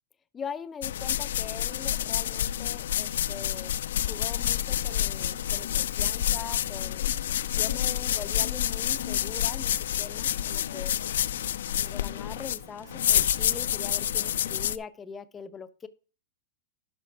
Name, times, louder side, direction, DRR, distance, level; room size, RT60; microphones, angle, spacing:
voice 1, 0.3-3.7 4.0-7.1 7.5-9.7 10.0-11.0 11.7-15.9, left 6 dB, 10° left, 14 dB, 0.5 m, -42 dB
sound 1, 0.8-14.8, left 11 dB, 80° left, 0.4 m, -28 dB
sound 2, 3.1-13.2, right 7 dB, 65° right, 4.2 m, -57 dB
11.0 x 5.7 x 4.6 m, 0.35 s
supercardioid pair, 180°, 0 cm